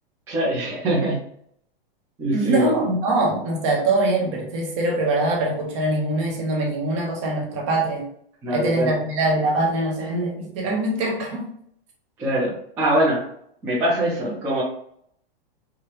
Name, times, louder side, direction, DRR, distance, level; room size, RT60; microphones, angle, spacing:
voice 1, 0.3-1.2 2.2-2.8 8.4-8.9 12.2-13.2 13.6-14.6, right 1 dB, 10° right, -9 dB, 0.6 m, -23 dB
voice 2, 2.3-8.1 8.5-11.5, right 2 dB, 30° right, -1 dB, 1.0 m, -23 dB
4.9 x 2.4 x 3.0 m, 0.67 s
supercardioid pair, 170°, 29 cm